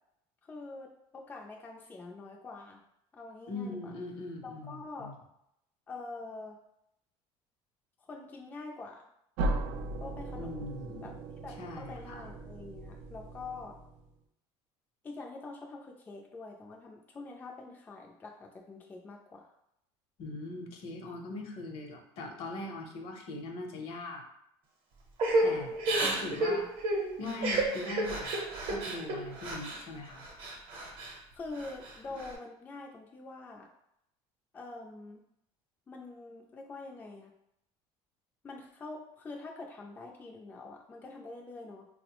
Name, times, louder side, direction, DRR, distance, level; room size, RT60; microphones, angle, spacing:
voice 1, 0.4-2.8 3.1-3.9 4.4-5.1 5.9-6.6 8.0-9.1 10.0-10.7 11.0-11.1 11.4-13.8 15.0-19.4 26.0-26.6 31.3-33.7 34.5-35.2 35.9-37.3 38.4-41.9, left 3 dB, 15° left, 0 dB, 0.3 m, -45 dB
voice 2, 3.5-5.2 10.4-11.1 11.6-12.3 20.2-24.2 25.4-26.6 27.0-28.3 28.7-30.3, left 2 dB, 60° left, 3 dB, 0.7 m, -41 dB
sound 1, 9.4-14.1, right 2 dB, 85° right, 0.4 m, -37 dB
Crying sobbing / Breathing, 25.2-29.8 30.2-31.1 31.5-32.3, right 2 dB, 55° right, 0.7 m, -31 dB
4.0 x 2.0 x 2.9 m, 0.77 s
cardioid pair, 145°, 11 cm